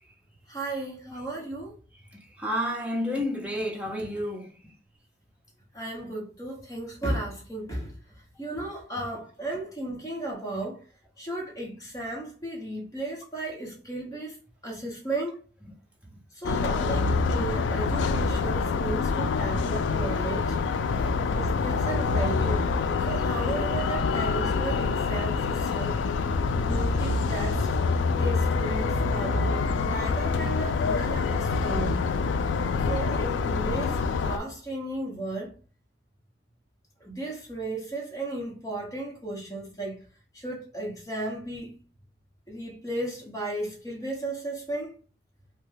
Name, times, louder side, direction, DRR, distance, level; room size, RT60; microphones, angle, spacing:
voice 1, 0.5-1.7 5.7-7.9 8.4-10.8 11.2-14.4 14.6-15.4 16.3-20.6 21.3-22.6 23.1-26.0 26.6-27.7 28.2-32.0 32.9-35.5 37.0-40.0 40.3-41.7 42.5-45.0, right 2 dB, 15° left, 1.0 m, -34 dB
voice 2, 2.1-4.5 21.0-21.1, equal, 5° right, 0.7 m, -30 dB
sound 1, 16.4-34.4, left 4 dB, 75° left, 0.3 m, -26 dB
3.2 x 2.2 x 3.3 m
head